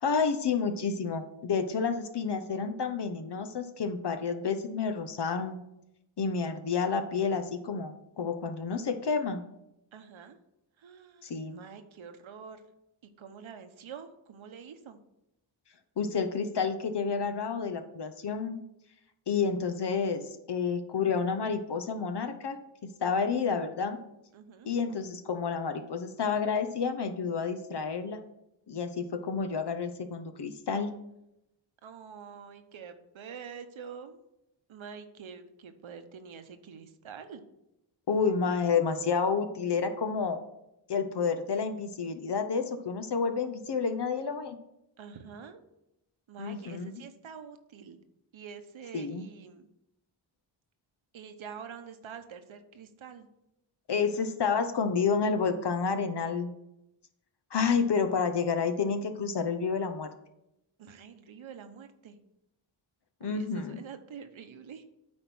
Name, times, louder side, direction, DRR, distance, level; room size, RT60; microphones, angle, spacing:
voice 1, 0.0-5.6 6.2-9.4 11.2-11.6 16.0-18.6 19.3-20.2 20.5-22.6 23.0-24.0 24.7-28.2 28.7-30.9 38.1-40.4 40.9-44.6 46.4-46.9 48.9-49.2 53.9-56.5 57.5-60.1 63.2-63.8, left 5 dB, 55° left, 8 dB, 0.9 m, -30 dB
voice 2, 9.9-10.4 10.8-12.6 13.0-15.0 23.4-23.6 24.3-24.7 31.8-34.2 34.7-37.4 45.0-45.6 46.3-48.0 48.3-49.7 51.1-53.3 60.8-62.2 63.2-64.8, right 6 dB, 70° right, 8 dB, 1.0 m, -46 dB
8.7 x 4.4 x 6.1 m, 0.85 s
cardioid pair, 70°, 49 cm